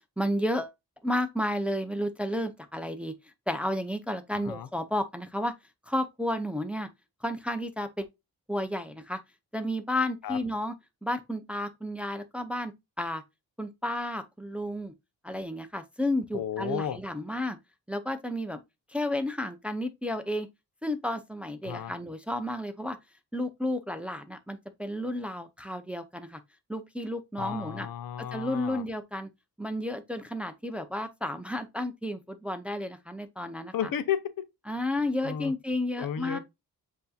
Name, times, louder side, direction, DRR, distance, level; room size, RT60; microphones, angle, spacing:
voice 1, 0.2-0.7 1.0-3.1 3.5-5.5 5.9-6.9 7.2-8.0 8.5-9.2 9.5-10.7 11.0-12.7 13.0-13.2 13.6-14.9 15.2-17.6 17.9-18.6 18.9-20.5 20.8-23.0 23.3-26.4 26.7-27.9 28.2-29.3 29.6-33.7 34.7-36.4, left 1 dB, 5° right, 0.5 m, -32 dB
voice 2, 4.3-4.7 10.2-10.4 16.3-17.0 21.6-21.9 27.4-28.9 33.7-34.4 35.2-35.5 36.0-36.4, left 9 dB, 65° left, 0.7 m, -33 dB
8.0 x 2.8 x 2.3 m
cardioid pair, 115°, 38 cm